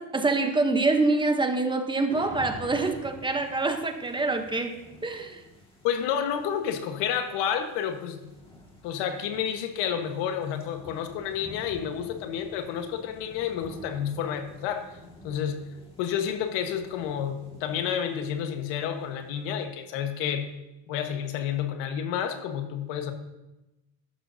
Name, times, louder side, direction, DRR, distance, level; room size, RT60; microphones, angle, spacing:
voice 1, 0.0-5.4, right 3 dB, 10° right, 6 dB, 0.9 m, -26 dB
sound 1, 2.1-19.9, left 2 dB, 10° left, 1.9 m, -49 dB
voice 2, 5.8-8.2 8.8-14.9 15.2-15.6 16.0-20.5 20.9-23.1, left 8 dB, 75° left, 7 dB, 1.4 m, -30 dB
13.0 x 12.0 x 2.7 m, 1.0 s
cardioid pair, 135°, 44 cm